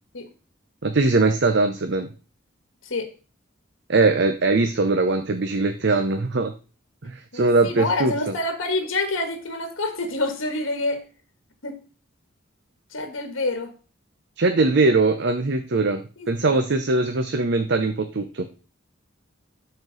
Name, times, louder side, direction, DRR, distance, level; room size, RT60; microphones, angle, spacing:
voice 1, 0.8-2.1 3.9-6.5 7.0-8.3 14.4-18.5, right 3 dB, 60° right, 7 dB, 0.7 m, -21 dB
voice 2, 7.3-11.0 11.6-11.8 12.9-13.7 16.2-16.6, left 2 dB, 90° left, 7 dB, 1.5 m, -27 dB
12.0 x 4.5 x 3.9 m, 0.36 s
head